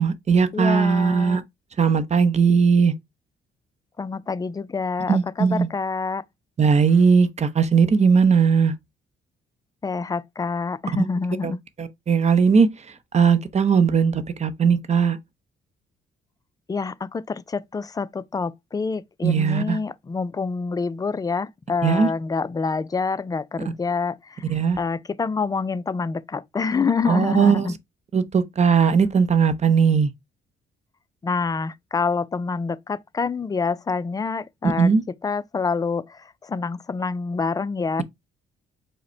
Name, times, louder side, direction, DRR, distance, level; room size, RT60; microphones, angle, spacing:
voice 1, 0.0-1.4 1.8-2.9 5.1-5.7 6.6-8.7 11.4-11.5 11.8-12.7 13.1-15.2 19.2-19.8 21.8-22.1 24.5-24.8 27.1-27.7 28.1-30.1 34.6-35.0, right 6 dB, 35° right, 0.6 m, -18 dB
voice 2, 0.5-1.4 4.0-6.2 9.8-11.6 16.7-27.8 31.2-34.9 35.2-38.0, left 4 dB, 20° left, 0.3 m, -27 dB
4.8 x 2.1 x 4.3 m
cardioid pair, 90°, 20 cm